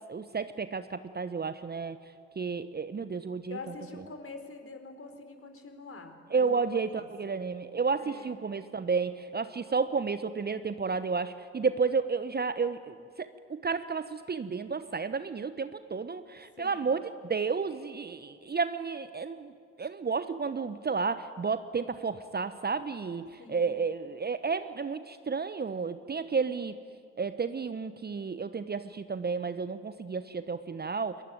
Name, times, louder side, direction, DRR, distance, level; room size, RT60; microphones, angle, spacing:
voice 1, 0.1-2.0 2.4-3.6 6.3-19.5 19.8-26.7 27.2-31.2, right 5 dB, 25° right, 13 dB, 1.0 m, -32 dB
voice 2, 3.5-7.4 8.0-8.4 16.6-16.9 23.4-23.7, left 3 dB, 40° left, 7 dB, 4.2 m, -46 dB
27.0 x 22.0 x 9.4 m, 2.2 s
figure-of-eight pair, 40°, 36 cm